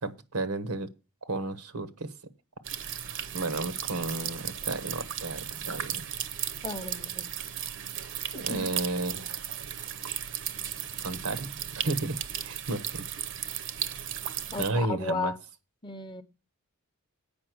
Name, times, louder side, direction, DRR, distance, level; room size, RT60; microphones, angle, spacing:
voice 1, 0.0-0.9 1.2-2.1 3.3-6.0 8.3-9.4 11.0-11.5 11.8-13.1 14.6-15.3, right 2 dB, 85° right, 1.2 m, -32 dB
sound 1, 2.6-14.7, right 10 dB, 60° right, 0.8 m, -35 dB
voice 2, 6.6-7.3 8.3-8.7 14.5-15.4 15.8-16.2, left 3 dB, 20° left, 0.7 m, -34 dB
8.7 x 5.4 x 7.7 m
head